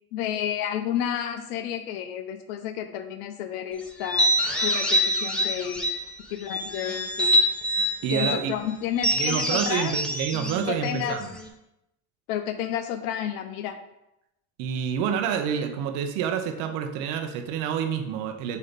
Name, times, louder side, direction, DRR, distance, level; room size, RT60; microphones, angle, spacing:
voice 1, 0.1-4.3 4.6-5.9 6.3-7.3 8.1-10.0 10.7-11.2 12.3-13.8, left 10 dB, 90° left, 7 dB, 0.8 m, -31 dB
sound 1, 4.0-6.1 6.5-8.4 9.0-11.5, equal, ahead, 0.9 m, -25 dB
voice 2, 8.0-8.5 9.1-11.3 14.6-18.6, right 8 dB, 75° right, 6 dB, 0.9 m, -28 dB
8.1 x 2.9 x 5.2 m, 0.88 s
cardioid pair, 125°, 44 cm